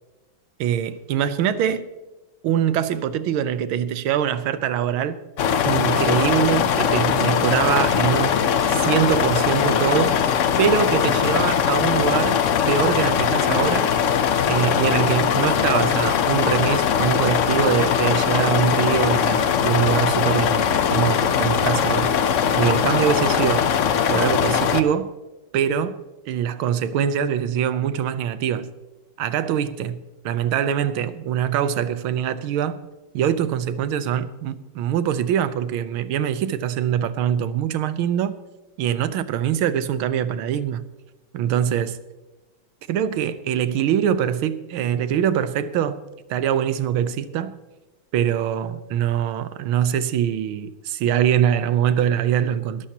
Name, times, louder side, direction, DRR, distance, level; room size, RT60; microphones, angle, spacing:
voice 1, 0.6-1.8 2.4-5.2 5.7-10.2 10.6-13.9 14.5-22.1 22.6-23.7 24.1-25.1 25.5-26.0 26.3-28.7 29.2-32.8 33.1-38.4 38.8-40.8 41.3-42.0 42.9-46.0 46.3-47.6 48.1-52.9, right 9 dB, 80° right, 1.6 m, -23 dB
sound 1, 5.4-24.8, left 8 dB, 90° left, 0.6 m, -20 dB
21.5 x 12.0 x 2.9 m
omnidirectional pair, 2.3 m